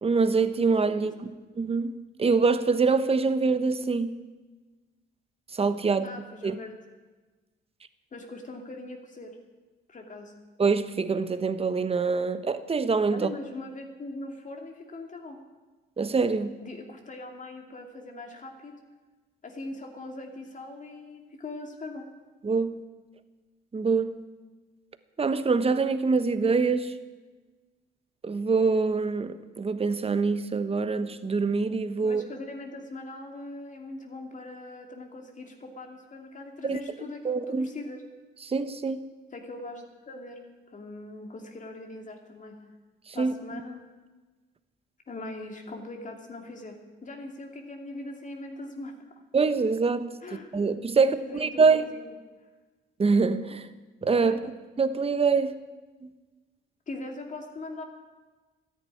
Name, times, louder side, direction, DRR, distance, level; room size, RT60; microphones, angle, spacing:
voice 1, 0.0-1.1 1.6-1.9 2.2-4.1 5.5-6.1 6.4-6.6 10.6-13.3 16.0-16.6 22.4-22.8 23.7-24.2 25.2-26.9 28.2-32.2 36.6-36.8 37.2-37.7 38.5-39.1 43.2-43.3 49.3-50.1 50.5-51.9 53.0-53.7 54.0-54.4 54.8-55.5 56.0-56.1, right 4 dB, 30° right, 11 dB, 1.1 m, -24 dB
voice 2, 0.9-1.3 6.0-6.8 8.1-9.4 9.9-10.3 13.1-15.4 16.6-18.8 19.4-22.1 32.0-38.0 39.3-40.4 40.7-42.6 43.1-43.8 45.1-49.1 50.2-50.5 51.0-52.2 54.2-54.4 56.9-57.8, left 2 dB, 40° left, 3 dB, 2.7 m, -41 dB
13.5 x 10.5 x 9.8 m, 1.3 s
cardioid pair, 90°, 20 cm